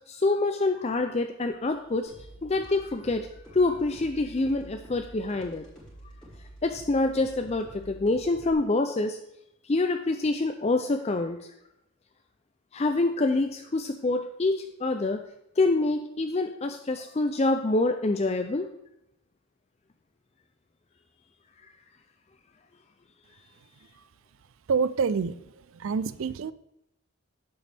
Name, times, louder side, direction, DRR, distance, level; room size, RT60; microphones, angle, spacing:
voice 1, 0.1-2.1 2.4-5.6 6.6-9.2 9.6-11.4 12.7-15.2 15.6-18.7, left 2 dB, 30° left, 6 dB, 0.4 m, -26 dB
sound 1, 2.1-8.5, right 1 dB, 5° left, 3.6 m, -48 dB
voice 2, 24.7-25.4 25.8-26.5, right 5 dB, 70° right, 17 dB, 0.4 m, -26 dB
11.0 x 7.8 x 3.4 m, 0.83 s
head